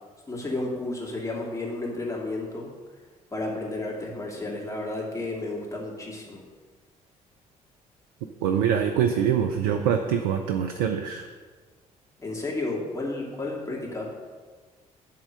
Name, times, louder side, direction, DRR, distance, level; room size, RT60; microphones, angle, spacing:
voice 1, 0.3-2.7 3.3-6.4 12.2-14.1, left 2 dB, 15° left, -3 dB, 2.4 m, -32 dB
voice 2, 8.4-11.3, right 8 dB, 65° right, 6 dB, 0.5 m, -24 dB
10.5 x 3.7 x 6.6 m, 1.5 s
figure-of-eight pair, 45°, 19 cm